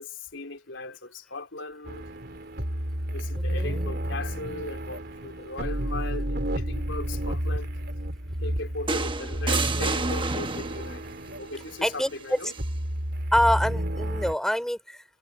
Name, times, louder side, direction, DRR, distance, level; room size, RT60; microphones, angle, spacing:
voice 1, 0.0-2.0 3.1-7.7 8.4-12.5, left 2 dB, 75° left, 3.8 m, -38 dB
sound 1, 1.8-14.3, equal, 55° right, 3.6 m, -31 dB
voice 2, 3.4-3.8 11.8-12.4 13.3-15.0, equal, 5° left, 4.2 m, -26 dB
sound 2, 8.9-11.0 12.4-12.6, right 4 dB, 25° right, 1.1 m, -30 dB
head